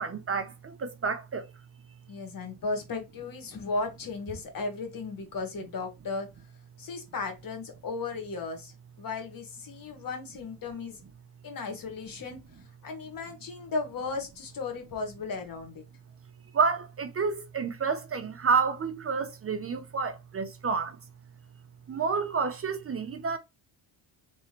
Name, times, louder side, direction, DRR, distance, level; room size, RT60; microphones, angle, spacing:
voice 1, 0.0-1.5 16.5-21.0 21.9-23.4, right 5 dB, 30° right, 0.6 m, -29 dB
voice 2, 2.1-6.3 6.8-8.7 9.0-11.0 11.4-12.4 12.8-15.8, left 3 dB, 45° left, 1.4 m, -35 dB
3.3 x 3.1 x 2.9 m
cardioid pair, 100°, 49 cm